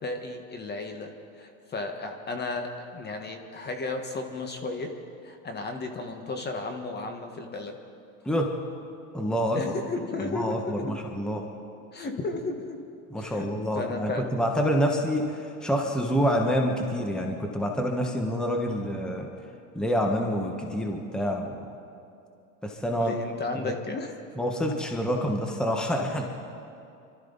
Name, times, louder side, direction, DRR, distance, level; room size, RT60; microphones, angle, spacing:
voice 1, 0.0-4.9 5.2-7.7 9.5-10.8 11.9-12.8 13.2-13.5 13.7-14.4 23.0-24.1, left 3 dB, 25° left, 5 dB, 1.5 m, -34 dB
voice 2, 9.1-9.6 10.2-11.4 13.1-19.3 19.7-21.6 22.6-23.1 23.6-23.7 24.4-26.3, equal, ahead, 2 dB, 1.3 m, -27 dB
25.0 x 13.0 x 4.1 m, 2.6 s
hypercardioid pair, 110°, 43 cm